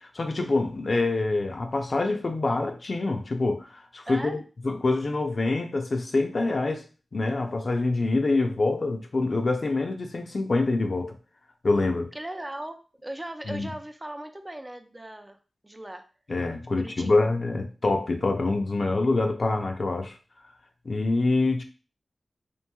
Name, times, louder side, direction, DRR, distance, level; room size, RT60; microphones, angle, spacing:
voice 1, 0.0-4.4 4.6-6.8 7.1-11.1 11.6-12.1 13.5-13.7 16.3-20.2 20.9-21.6, left 2 dB, 60° left, 0.5 m, -25 dB
voice 2, 4.1-4.4 12.1-15.4 15.6-16.0 16.8-17.3, right 1 dB, 25° right, 0.4 m, -38 dB
3.0 x 2.5 x 2.3 m
cardioid pair, 40°, 0 cm